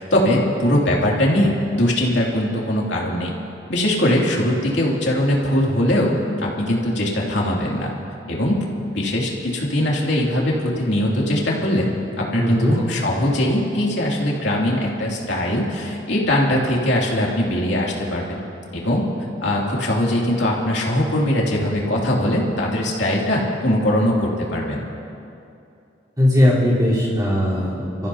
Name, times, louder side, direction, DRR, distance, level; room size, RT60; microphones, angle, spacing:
voice 1, 0.0-3.3 3.7-7.9 8.3-8.6 8.9-11.9 12.2-18.4 18.7-19.1 19.4-24.8, left 1 dB, 75° left, -3 dB, 2.8 m, -21 dB
voice 2, 12.4-12.8 26.2-28.1, left 1 dB, 20° right, -8 dB, 4.0 m, -19 dB
29.5 x 14.5 x 2.9 m, 2.6 s
head